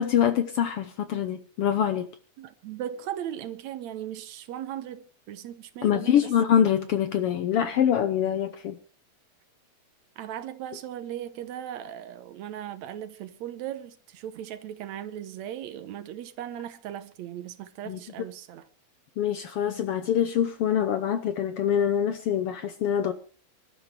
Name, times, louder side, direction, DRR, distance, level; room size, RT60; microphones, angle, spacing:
voice 1, 0.0-2.1 5.8-8.8 17.9-18.0 19.2-23.1, left 9 dB, 70° left, 1.4 m, -24 dB
voice 2, 2.4-6.3 10.2-18.7, right 11 dB, 75° right, 2.1 m, -38 dB
26.0 x 12.5 x 3.2 m
omnidirectional pair, 3.4 m